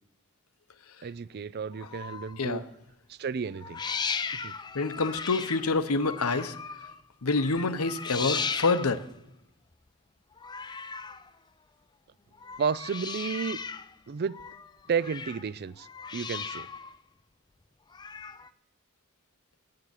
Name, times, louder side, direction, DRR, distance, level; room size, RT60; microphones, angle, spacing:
voice 1, 1.0-2.6 3.1-3.8 4.3-4.6 8.3-8.4 12.6-13.6 14.1-14.4 14.9-15.9 16.1-16.7, right 6 dB, 45° right, 19 dB, 0.4 m, -32 dB
Gatos no cio, 1.7-2.5 3.5-7.0 7.3-9.1 10.4-11.3 12.3-13.9 14.2-15.5 15.8-17.0 17.9-18.5, left 5 dB, 20° left, 0.4 m, -37 dB
voice 2, 4.7-6.6 7.2-9.0, left 3 dB, 75° left, 11 dB, 0.9 m, -27 dB
16.0 x 6.7 x 9.8 m, 0.87 s
head